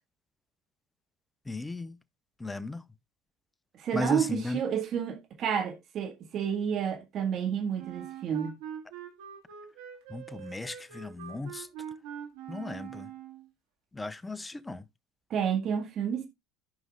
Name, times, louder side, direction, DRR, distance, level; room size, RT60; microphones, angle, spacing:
voice 1, 1.5-1.9 2.4-2.8 3.9-4.6 10.1-11.7 12.5-13.1 13.9-14.8, left 2 dB, 15° left, 0.6 m, -35 dB
voice 2, 3.8-8.6 15.3-16.3, right 8 dB, 50° right, 1.9 m, -30 dB
Wind instrument woodwind instrument, 7.8-13.5, right 9 dB, 75° right, 2.0 m, -43 dB
15.0 x 5.3 x 2.4 m
hypercardioid pair, 80°, 0 cm